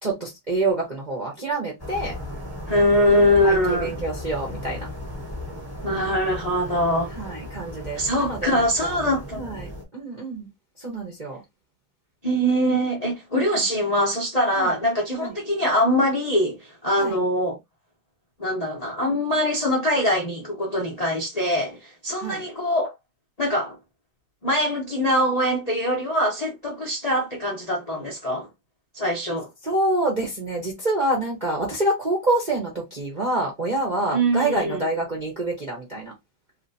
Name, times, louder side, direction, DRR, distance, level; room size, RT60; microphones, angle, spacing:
voice 1, 0.0-2.2 3.4-4.9 7.2-10.5 10.8-11.4 13.5-13.7 14.5-14.7 15.2-15.3 17.0-17.2 22.2-22.5 29.6-36.1, right 2 dB, 35° right, 0.6 m, -27 dB
sound 1, 1.8-9.8, left 1 dB, 10° left, 0.7 m, -36 dB
voice 2, 2.7-3.9 5.8-7.1 7.9-9.4 12.2-17.6 18.4-22.9 23.4-23.8 24.4-28.5 28.9-29.5 34.1-34.8, equal, 50° left, 0.4 m, -23 dB
3.0 x 2.9 x 2.7 m
omnidirectional pair, 2.4 m